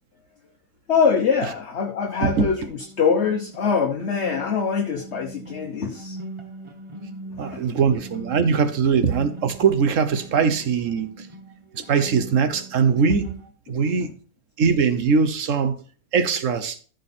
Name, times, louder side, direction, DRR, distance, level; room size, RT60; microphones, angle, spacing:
voice 1, 0.9-6.2 7.3-7.6, left 6 dB, 50° left, 3 dB, 1.2 m, -23 dB
sound 1, 2.1-13.5, right 2 dB, 25° right, 1.0 m, -41 dB
voice 2, 7.4-11.3 11.7-13.3 13.7-14.1 14.6-15.8 16.1-16.8, right 6 dB, 60° right, 10 dB, 1.3 m, -21 dB
13.5 x 5.4 x 4.3 m, 0.41 s
omnidirectional pair, 1.5 m